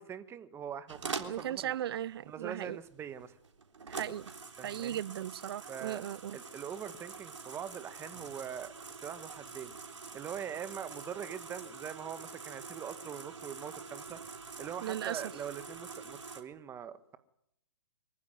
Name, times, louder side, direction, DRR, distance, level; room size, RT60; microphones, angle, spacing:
voice 1, 0.0-1.7 2.2-3.4 4.6-5.0 5.7-6.0 6.3-8.7 9.0-9.7 10.1-14.2 14.6-17.2, right 8 dB, 15° right, 1.7 m, -43 dB
sound 1, 0.9-16.4, right 5 dB, 80° right, 3.7 m, -46 dB
voice 2, 1.3-2.8 3.9-4.3 4.6-6.4 14.8-15.2, right 11 dB, 55° right, 0.8 m, -37 dB
24.5 x 15.0 x 9.4 m
hypercardioid pair, 130°, 15 cm